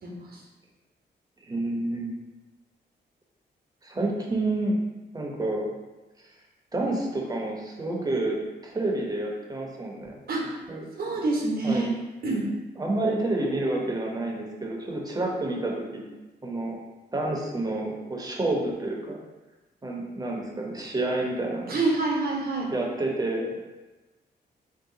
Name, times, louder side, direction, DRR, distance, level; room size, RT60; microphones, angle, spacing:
voice 1, 0.0-0.4 10.3-10.5 11.0-11.9 12.2-12.5 21.7-22.7, right 3 dB, 60° right, -1 dB, 1.0 m, -27 dB
voice 2, 1.4-2.2 3.8-4.8 5.1-5.7 6.7-8.4 8.6-10.2 10.7-10.9 11.6-11.9 12.8-16.0 16.4-16.8 17.1-19.2 19.8-21.8 22.7-23.6, right 2 dB, 20° right, -1 dB, 0.9 m, -29 dB
3.6 x 2.8 x 3.8 m, 1.1 s
cardioid pair, 80°, 18 cm